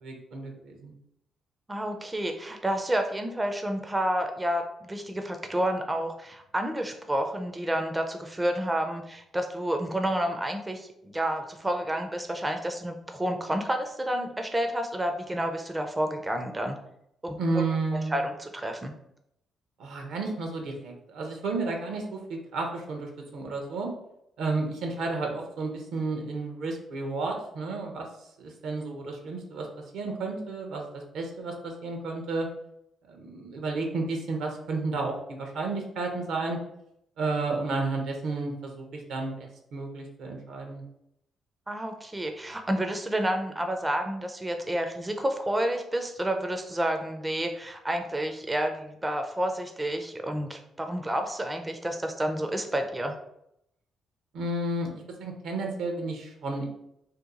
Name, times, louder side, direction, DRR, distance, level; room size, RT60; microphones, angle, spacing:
voice 1, 0.0-0.9 17.4-18.2 19.8-23.9 24.4-29.7 29.9-32.5 33.1-36.6 37.2-40.8 54.3-56.7, right 3 dB, 80° right, 2 dB, 0.8 m, -32 dB
voice 2, 1.7-10.9 11.1-16.8 17.2-17.4 17.9-18.9 41.7-53.1, right 1 dB, 15° right, 5 dB, 0.4 m, -30 dB
2.8 x 2.2 x 3.7 m, 0.77 s
cardioid pair, 90°, 0 cm